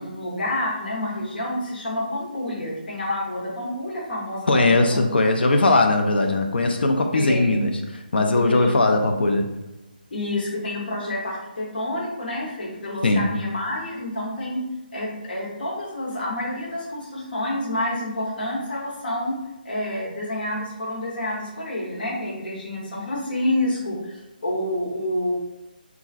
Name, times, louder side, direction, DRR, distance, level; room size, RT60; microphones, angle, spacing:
voice 1, 0.0-5.0 7.1-7.6 8.5-8.9 10.1-14.6 14.9-19.4 19.6-25.3, left 1 dB, 65° left, -4 dB, 0.9 m, -28 dB
voice 2, 4.5-9.5 13.0-13.4, left 2 dB, 80° left, 4 dB, 0.4 m, -20 dB
3.0 x 2.3 x 2.4 m, 0.94 s
hypercardioid pair, 160°, 5 cm